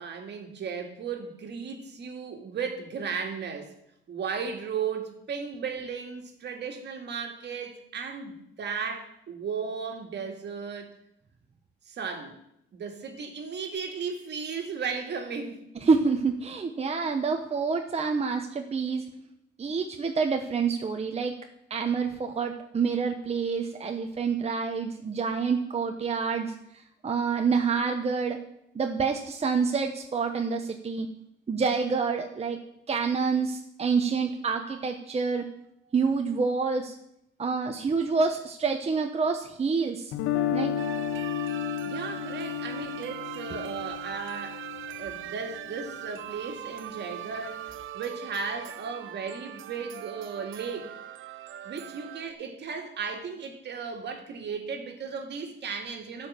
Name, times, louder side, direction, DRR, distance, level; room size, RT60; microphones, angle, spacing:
voice 1, 0.0-3.7 4.1-10.9 11.9-12.4 12.7-15.6 41.8-44.6 45.0-51.0 51.6-56.3, right 5 dB, 60° right, 4 dB, 2.1 m, -35 dB
voice 2, 15.8-19.0 19.6-21.3 21.7-26.5 27.0-28.4 28.7-31.1 31.5-32.6 32.9-35.4 35.9-36.9 37.4-40.1 40.5-40.7, right 5 dB, 30° right, 4 dB, 1.0 m, -27 dB
Guitar, 40.1-46.1, left 10 dB, 90° left, 0.8 m, -33 dB
sound 1, 40.8-52.3, right 12 dB, 80° right, 0.7 m, -41 dB
11.0 x 5.2 x 7.5 m, 0.77 s
cardioid pair, 90°, 20 cm